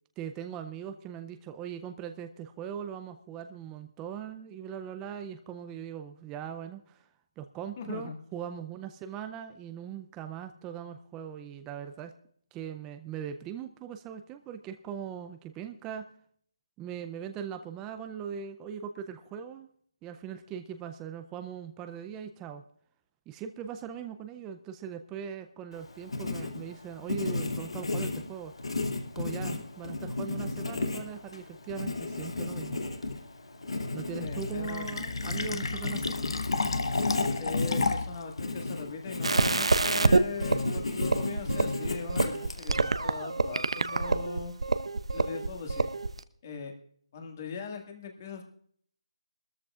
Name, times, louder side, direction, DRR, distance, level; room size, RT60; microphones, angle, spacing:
voice 1, 0.2-7.1 7.4-12.1 12.5-16.1 16.8-19.7 20.0-22.6 23.3-28.5 29.2-32.8 33.9-36.2, right 8 dB, 10° right, 8 dB, 0.4 m, -40 dB
voice 2, 7.8-8.1 34.2-34.8 37.3-44.5 45.1-45.9 46.4-46.7 47.1-48.4, left 5 dB, 30° left, 4 dB, 1.8 m, -40 dB
Writing, 25.7-42.9, left 2 dB, 75° left, 2.3 m, -34 dB
Fill (with liquid), 34.2-38.2, left 4 dB, 60° left, 1.1 m, -32 dB
sound 1, 39.2-46.2, right 3 dB, 80° right, 0.8 m, -27 dB
21.0 x 13.5 x 2.4 m, 0.62 s
figure-of-eight pair, 165°, 3 cm